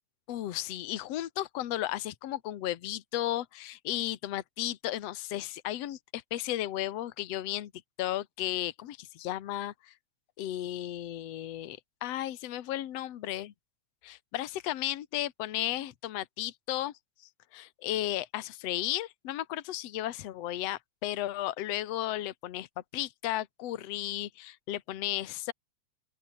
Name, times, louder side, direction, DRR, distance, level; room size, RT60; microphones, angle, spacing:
voice 1, 0.3-7.7 8.0-9.9 10.4-13.5 14.0-16.9 17.5-22.7 22.9-25.5, left 14 dB, 65° left, 2.3 m, -34 dB
open air
omnidirectional pair, 3.3 m